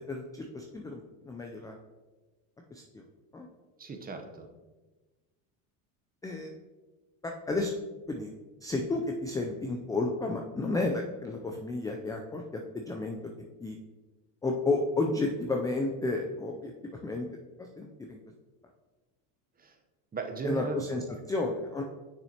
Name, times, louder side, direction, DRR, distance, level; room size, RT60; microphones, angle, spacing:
voice 1, 0.1-1.8 2.7-3.0 3.3-3.5 6.2-6.5 7.2-7.7 8.1-8.3 8.6-13.2 13.6-13.8 14.4-16.7 17.0-17.3 17.6-18.2 20.4-21.0 21.3-21.8, left 2 dB, 10° left, 2 dB, 0.3 m, -32 dB
voice 2, 3.8-4.5 19.6-19.8 20.1-21.2, right 4 dB, 20° right, 5 dB, 0.8 m, -37 dB
6.4 x 6.0 x 2.8 m, 1.2 s
supercardioid pair, 105°, 43 cm